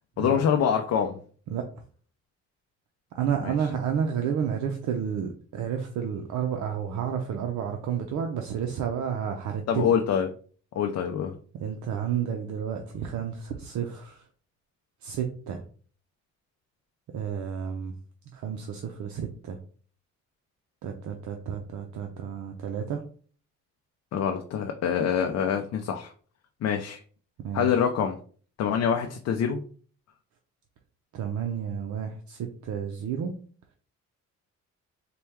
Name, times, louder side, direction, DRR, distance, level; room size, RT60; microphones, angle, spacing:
voice 1, 0.2-1.2 3.4-3.5 9.7-10.3 10.7-11.4 24.1-26.1 26.6-27.0 27.5-28.2 28.6-29.6, left 8 dB, 60° left, 4 dB, 0.5 m, -25 dB
voice 2, 3.1-9.9 11.5-14.3 15.0-15.6 17.1-17.9 18.3-19.6 20.8-23.0 27.4-27.7 31.1-33.4, right 8 dB, 70° right, 4 dB, 0.6 m, -31 dB
4.2 x 2.2 x 3.4 m, 0.43 s
cardioid pair, 90°, 30 cm